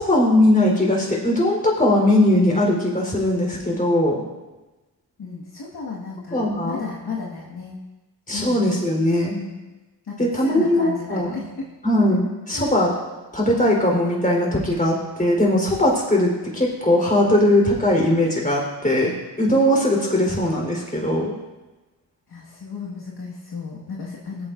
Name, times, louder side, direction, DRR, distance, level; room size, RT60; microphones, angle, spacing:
voice 1, 0.0-4.2 6.3-6.8 8.3-9.3 10.2-11.4 11.8-12.9 13.3-21.3, left 1 dB, 20° left, -2 dB, 4.0 m, -20 dB
voice 2, 5.2-7.8 8.3-8.6 9.3-9.6 10.0-11.7 12.5-12.7 22.3-24.5, left 4 dB, 60° left, -4 dB, 1.8 m, -34 dB
17.5 x 8.4 x 2.6 m, 1.1 s
cardioid pair, 60°, 43 cm